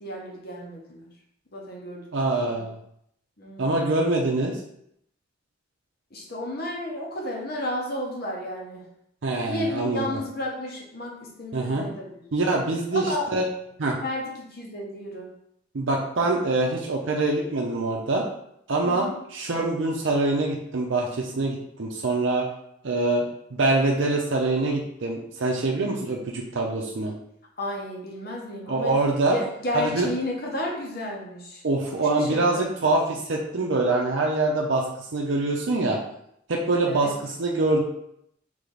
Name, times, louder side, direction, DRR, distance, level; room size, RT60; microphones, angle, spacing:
voice 1, 0.0-1.1 1.5-2.0 2.3-2.7 3.4-3.8 6.1-8.8 9.5-12.2 12.9-13.2 14.0-15.3 18.8-19.2 27.6-29.0 29.3-31.6 32.2-32.7 36.8-37.1, left 1 dB, 50° left, -2 dB, 1.1 m, -32 dB
voice 2, 2.1-2.7 3.6-4.6 9.2-10.2 11.5-11.9 12.3-13.5 13.8-14.0 15.7-18.2 18.7-22.5 22.8-23.2 23.5-27.1 28.7-29.4 29.7-30.1 31.6-34.8 35.1-36.0 36.5-37.8, right 2 dB, 75° right, -1 dB, 0.6 m, -24 dB
3.4 x 3.3 x 3.9 m, 0.74 s
head